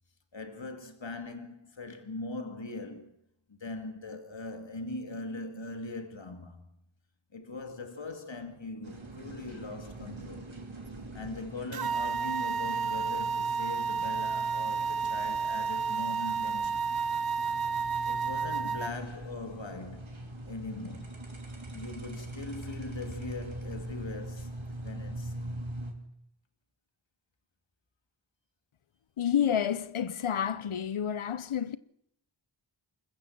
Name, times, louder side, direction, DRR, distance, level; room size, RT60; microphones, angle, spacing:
voice 1, 0.3-3.1 3.5-6.6 7.3-10.5 11.1-16.9 18.1-21.1 21.7-25.6, left 2 dB, 65° left, 2.3 m, -41 dB
sound 1, 8.8-25.9, right 1 dB, 75° right, 3.5 m, -42 dB
sound 2, 11.7-18.9, right 5 dB, 50° right, 0.7 m, -31 dB
voice 2, 29.2-31.8, left 9 dB, 85° left, 0.7 m, -29 dB
27.0 x 14.5 x 7.3 m
wide cardioid pair, 40°, 48 cm